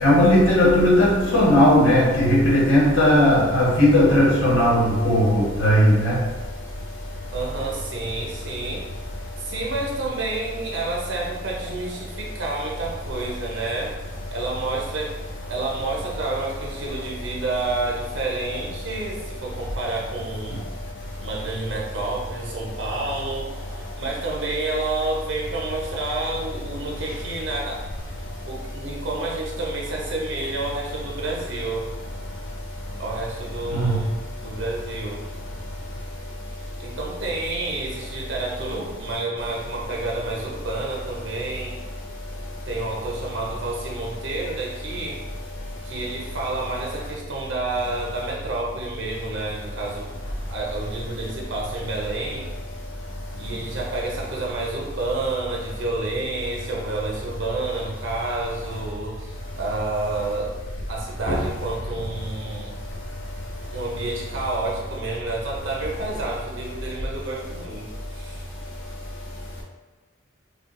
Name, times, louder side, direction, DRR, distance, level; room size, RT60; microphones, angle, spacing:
voice 1, 0.0-6.2 33.7-34.0 61.3-61.4, left 1 dB, 85° left, -5 dB, 1.2 m, -17 dB
voice 2, 7.3-8.8 9.4-14.0 14.3-15.2 15.5-20.6 21.2-27.9 28.5-31.9 33.0-34.1 34.4-35.2 36.6-41.8 42.7-45.2 45.8-50.1 50.5-52.5 53.4-60.5 60.9-62.7 63.7-68.4, right 2 dB, 75° right, -2 dB, 0.7 m, -29 dB
5.1 x 2.3 x 2.5 m, 1.3 s
head